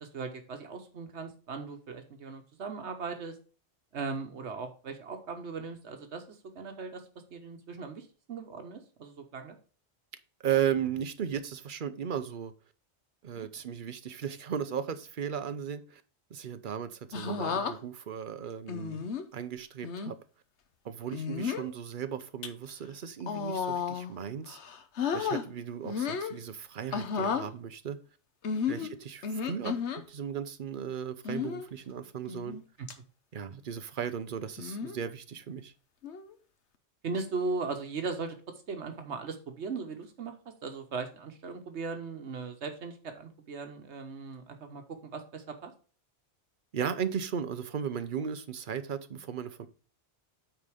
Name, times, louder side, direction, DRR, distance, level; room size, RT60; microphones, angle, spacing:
voice 1, 0.0-3.4 3.9-7.0 7.3-9.6 13.3-13.5 28.8-28.9 37.0-38.4 38.7-40.3 40.6-45.7, right 4 dB, 80° right, 1.3 m, -38 dB
voice 2, 10.4-12.5 13.2-16.0 16.3-20.2 20.8-24.6 25.1-28.0 28.7-29.7 30.1-32.6 33.3-35.7 46.7-49.7, right 8 dB, 50° right, 0.8 m, -36 dB
sound 1, 17.1-17.7 18.7-19.2 19.8-20.1 21.1-21.7 22.2-22.5 23.2-24.1 24.5-25.4 25.9-26.4 26.9-27.5 28.4-30.0 31.2-31.7 32.3-32.6 32.9-33.0 34.6-35.0 36.0-36.3, left 6 dB, 80° left, 1.2 m, -33 dB
9.1 x 4.0 x 4.9 m
omnidirectional pair, 1.1 m